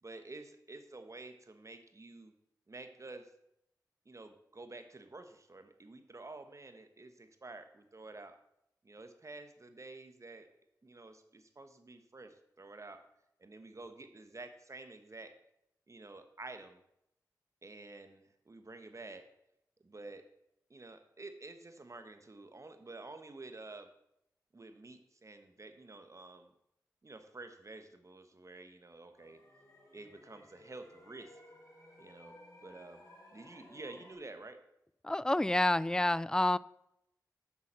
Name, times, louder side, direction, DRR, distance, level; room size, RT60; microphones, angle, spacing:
voice 1, 0.0-2.3 2.7-3.3 4.0-8.4 8.8-10.5 10.8-13.0 13.4-15.3 15.9-16.8 17.6-19.3 19.8-20.2 20.7-23.9 24.5-26.5 27.0-29.4 29.9-31.4 32.0-32.4 32.6-33.0 33.3-34.6, right 2 dB, 45° right, 8 dB, 1.3 m, -50 dB
sound 1, 29.1-34.1, left 1 dB, 45° left, 3.9 m, -58 dB
voice 2, 35.0-36.6, left 1 dB, 10° left, 20 dB, 0.3 m, -28 dB
7.2 x 6.3 x 7.4 m, 0.80 s
cardioid pair, 40°, 7 cm